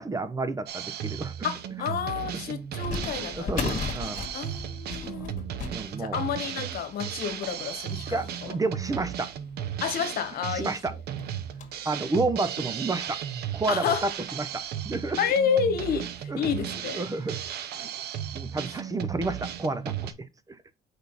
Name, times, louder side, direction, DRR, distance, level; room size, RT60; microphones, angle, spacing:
voice 1, 0.0-1.3 3.3-4.3 5.1-5.3 5.7-6.2 8.1-9.3 10.5-10.9 11.8-13.2 13.5-15.2 16.3-16.4 16.9-17.4 17.7-17.9 18.3-20.6, right 3 dB, 20° right, 0.7 m, -30 dB
Drum kit, 0.7-20.1, right 10 dB, 70° right, 1.0 m, -35 dB
voice 2, 1.4-3.8 4.3-5.3 6.0-8.5 9.8-10.7 13.7-14.1 15.2-16.1 16.4-17.0, left 7 dB, 65° left, 1.4 m, -29 dB
sound 1, 1.4-1.5 2.8-9.8 10.3-10.4 10.7-10.8 11.2-11.9 12.4-12.5 13.4-13.5 13.8-14.0 15.3-15.6 16.0-16.1 16.7-16.9, left 5 dB, 50° left, 1.8 m, -38 dB
6.2 x 5.3 x 4.1 m
cardioid pair, 110°, 17 cm